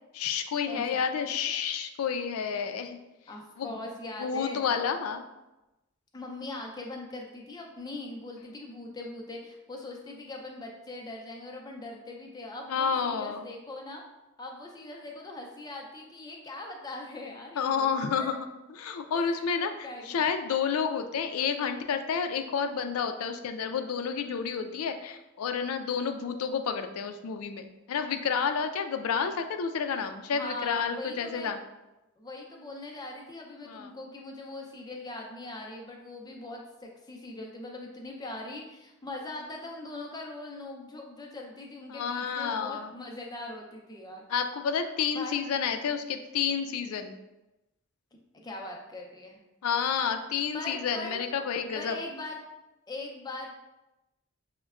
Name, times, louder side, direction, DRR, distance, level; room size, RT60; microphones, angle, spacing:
voice 1, 0.1-3.0 3.6-3.7 4.2-5.2 12.7-13.5 17.6-31.6 33.6-34.0 41.9-42.9 44.3-47.2 49.6-52.0, left 6 dB, 90° left, 7 dB, 0.4 m, -30 dB
voice 2, 0.7-1.0 3.3-4.7 6.1-14.0 14.4-18.4 19.1-20.0 30.3-31.5 32.2-44.2 45.1-45.4 48.3-49.4 50.5-51.2 51.7-52.4 52.9-53.6, left 2 dB, 20° left, 0 dB, 0.5 m, -41 dB
6.2 x 2.1 x 2.3 m, 0.98 s
head